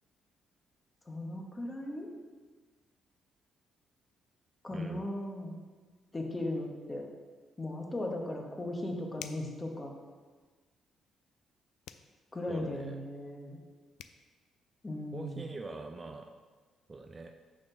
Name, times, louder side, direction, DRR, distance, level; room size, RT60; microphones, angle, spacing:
voice 1, 1.1-2.1 4.6-5.6 6.1-7.0 7.6-9.9 12.3-13.6 14.8-15.4, left 1 dB, 20° left, 1 dB, 1.3 m, -37 dB
voice 2, 4.7-5.1 12.5-13.0 15.1-16.3 16.9-17.3, right 3 dB, 30° right, 5 dB, 0.5 m, -43 dB
sound 1, 9.2-9.6 11.8-12.1 13.6-13.7 14.0-14.2, left 10 dB, 85° left, 0.3 m, -46 dB
6.2 x 4.4 x 5.9 m, 1.4 s
cardioid pair, 90°, 0 cm